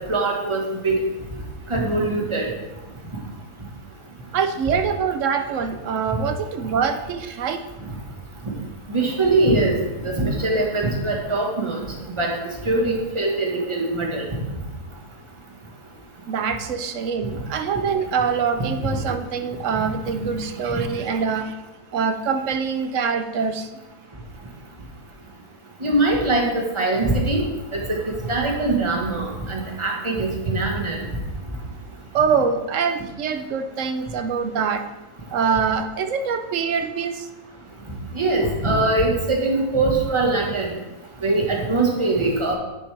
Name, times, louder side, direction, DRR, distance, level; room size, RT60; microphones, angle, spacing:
voice 1, 0.1-1.0 1.7-2.5 8.9-9.7 10.0-11.8 12.2-12.3 12.6-14.2 25.8-27.4 27.7-27.8 28.3-31.0 38.1-40.7 41.2-42.5, right 2 dB, 20° right, -1 dB, 1.4 m, -22 dB
voice 2, 4.3-7.6 16.3-21.6 21.9-23.7 32.1-34.9 35.3-37.3, right 6 dB, 60° right, 8 dB, 0.9 m, -24 dB
9.5 x 7.1 x 3.4 m, 1.1 s
omnidirectional pair, 1.6 m